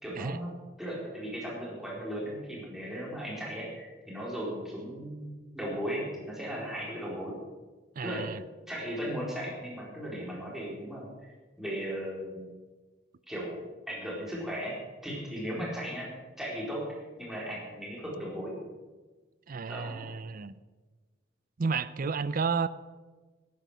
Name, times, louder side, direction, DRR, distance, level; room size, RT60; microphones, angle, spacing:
voice 1, 0.0-7.4 8.0-8.2 8.7-11.1 11.6-12.5 13.3-13.6 13.9-14.7 15.0-16.1 16.4-16.8 17.2-18.6 19.7-20.1, equal, ahead, -5 dB, 4.3 m, -36 dB
voice 2, 8.0-8.4 19.5-20.6 21.6-22.7, right 5 dB, 45° right, 16 dB, 0.5 m, -31 dB
13.5 x 10.5 x 6.3 m, 1.3 s
head